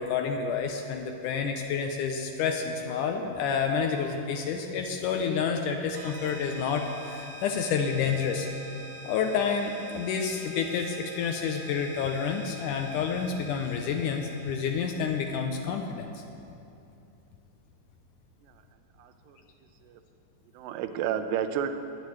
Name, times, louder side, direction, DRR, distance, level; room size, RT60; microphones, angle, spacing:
voice 1, 0.0-8.5 9.0-16.2, left 6 dB, 80° left, 4 dB, 2.0 m, -29 dB
sound 1, 5.9-15.3, equal, 60° right, 2.5 m, -45 dB
voice 2, 19.0-19.4 19.8-20.0 20.5-21.7, right 9 dB, 85° right, 8 dB, 2.3 m, -31 dB
21.0 x 8.7 x 3.2 m, 2.8 s
omnidirectional pair, 4.0 m